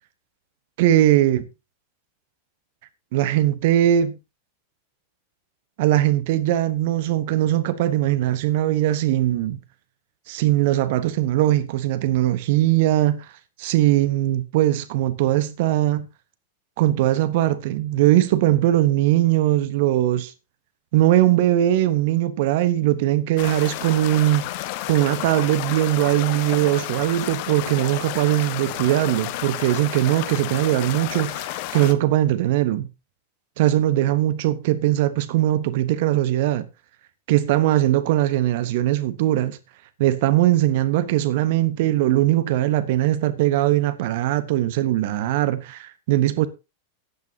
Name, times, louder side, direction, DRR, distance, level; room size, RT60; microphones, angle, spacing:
voice 1, 0.8-1.5 3.1-4.2 5.8-9.6 10.3-13.3 13.6-16.1 16.8-20.3 20.9-24.4 24.9-32.9 33.6-36.6 37.3-39.6 40.0-46.5, right 14 dB, 50° right, 1.2 m, -20 dB
sound 1, 23.4-31.9, left 15 dB, 45° left, 1.3 m, -31 dB
14.5 x 10.5 x 2.9 m
figure-of-eight pair, 90°, 0 cm